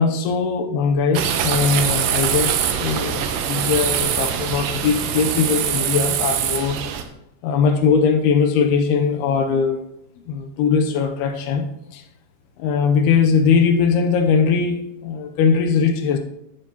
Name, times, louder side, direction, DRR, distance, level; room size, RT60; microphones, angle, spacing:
voice 1, 0.0-6.8 7.4-9.8 10.3-11.7 11.9-12.0 12.6-16.2, left 5 dB, 80° left, 6 dB, 2.8 m, -20 dB
sound 1, 1.1-7.0, right 9 dB, 75° right, 2.0 m, -23 dB
13.5 x 8.1 x 3.0 m, 0.82 s
omnidirectional pair, 4.6 m